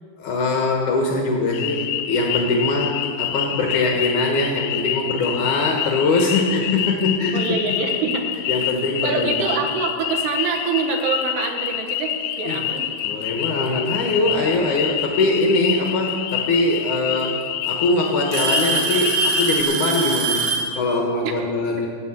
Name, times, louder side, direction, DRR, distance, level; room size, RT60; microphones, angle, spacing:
voice 1, 0.2-7.6 8.5-9.6 12.5-12.6 13.0-17.4 17.7-20.5 20.7-21.9, left 2 dB, 60° left, 1 dB, 2.4 m, -22 dB
sound 1, 1.5-19.6, left 11 dB, 85° left, 2.7 m, -27 dB
Alarm / Tick-tock, 6.8-7.0 7.9-8.0 8.8-8.9 10.6-10.7 11.9-12.0 13.2-13.7 15.4-15.5 16.8-16.9 17.2-17.7 18.3-20.8, right 4 dB, 65° right, 3.7 m, -23 dB
voice 2, 7.3-8.3 9.0-12.9 21.2-21.5, right 5 dB, 90° right, 3 dB, 3.5 m, -25 dB
16.0 x 6.8 x 7.9 m, 2.1 s
omnidirectional pair, 4.6 m